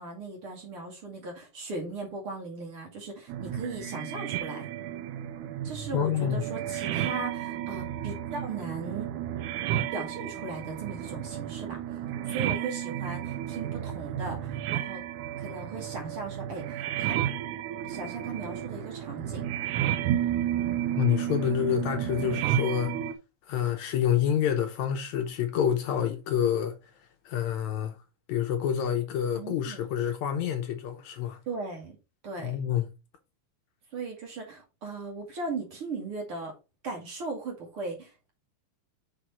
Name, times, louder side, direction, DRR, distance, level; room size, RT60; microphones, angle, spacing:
voice 1, 0.0-4.7 5.6-9.1 9.9-11.8 12.3-15.0 15.4-17.2 17.9-19.4 29.3-29.9 31.5-32.0 32.2-32.6 33.9-36.5 36.8-38.3, right 3 dB, 45° right, 2.8 m, -38 dB
sound 1, 3.3-23.2, right 11 dB, 80° right, 2.1 m, -32 dB
voice 2, 5.9-6.4 21.0-22.9 23.5-26.7 27.3-28.0 28.3-31.4 32.4-32.9, left 9 dB, 75° left, 1.9 m, -27 dB
6.2 x 4.9 x 4.3 m
omnidirectional pair, 3.8 m